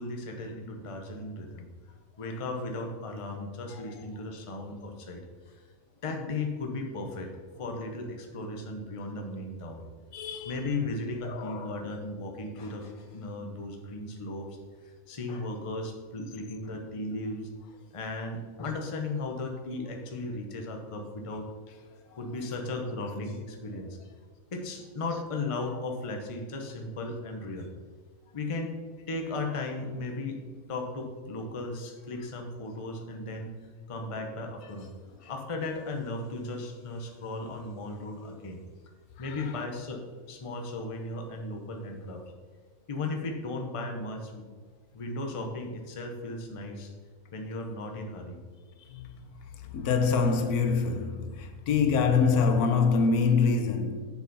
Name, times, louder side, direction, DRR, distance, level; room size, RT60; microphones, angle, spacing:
voice 1, 0.0-1.7 2.2-5.6 6.0-9.8 10.4-14.5 14.8-17.5 17.9-21.5 22.2-24.0 24.5-27.7 28.3-28.8 29.1-30.4 30.7-33.5 33.9-38.6 39.2-40.0 40.3-42.2 42.9-44.4 44.9-46.9 47.3-48.4, left 2 dB, 30° left, 0.7 m, -36 dB
voice 2, 10.1-10.6 11.2-11.8 48.9-49.1 49.7-54.1, left 5 dB, 80° left, 1.2 m, -25 dB
7.1 x 6.9 x 4.0 m
omnidirectional pair, 1.6 m